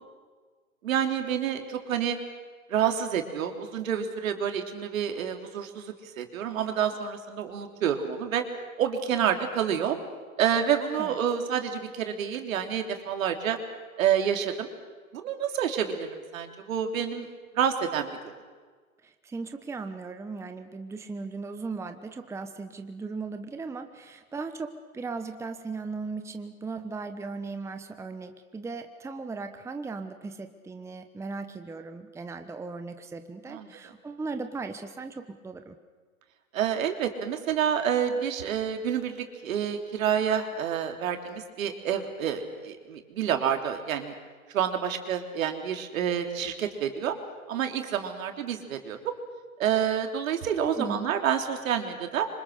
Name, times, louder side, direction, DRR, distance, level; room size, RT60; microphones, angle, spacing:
voice 1, 0.8-2.2 2.7-8.4 8.8-10.0 10.4-13.6 14.0-14.7 15.1-17.3 17.6-18.2 33.5-33.7 36.5-44.1 44.5-47.2 47.5-49.0 49.6-52.3, right 8 dB, 65° right, 5 dB, 3.5 m, -28 dB
voice 2, 19.0-35.8 50.6-51.2, right 4 dB, 5° right, 7 dB, 1.1 m, -37 dB
27.0 x 25.5 x 6.7 m, 1.5 s
hypercardioid pair, 125°, 43 cm